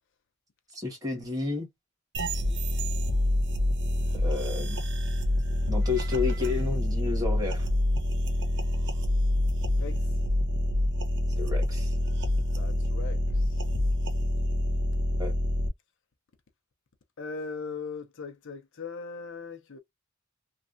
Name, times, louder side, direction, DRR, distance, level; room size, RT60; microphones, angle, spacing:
voice 1, 0.7-1.7 4.1-4.8 5.7-7.7 11.4-11.9 15.2-15.3, left 4 dB, 20° right, 1.4 m, -31 dB
sound 1, 2.1-15.7, left 1 dB, 60° right, 0.7 m, -27 dB
voice 2, 9.8-10.1 12.5-13.6 17.2-19.8, left 4 dB, 60° left, 0.6 m, -39 dB
3.2 x 2.4 x 2.5 m
head